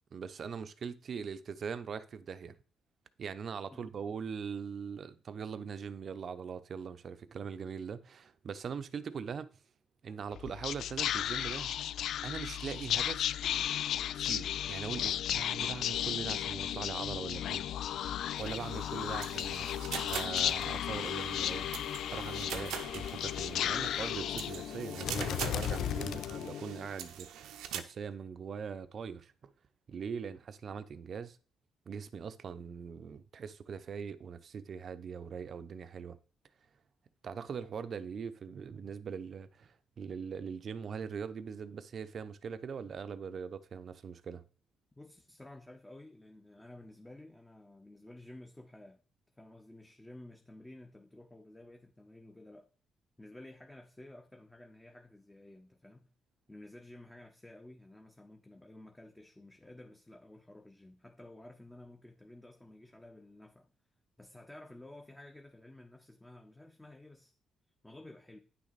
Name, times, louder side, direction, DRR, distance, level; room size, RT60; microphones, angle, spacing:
voice 1, 0.1-2.6 3.2-9.5 10.0-11.8 12.2-13.3 14.1-17.7 18.4-21.7 22.1-29.5 29.9-31.4 31.9-36.2 37.2-44.4, right 6 dB, 50° right, 0.7 m, -41 dB
Whispering, 10.3-26.9, left 11 dB, 75° left, 0.3 m, -35 dB
sound 1, 18.4-27.8, right 9 dB, 90° right, 0.9 m, -44 dB
voice 2, 45.0-49.0 49.4-52.7 53.2-56.1 56.5-63.7 64.2-67.3 67.8-68.4, left 1 dB, 10° left, 1.0 m, -53 dB
9.6 x 6.1 x 4.1 m
cardioid pair, 90°, 0 cm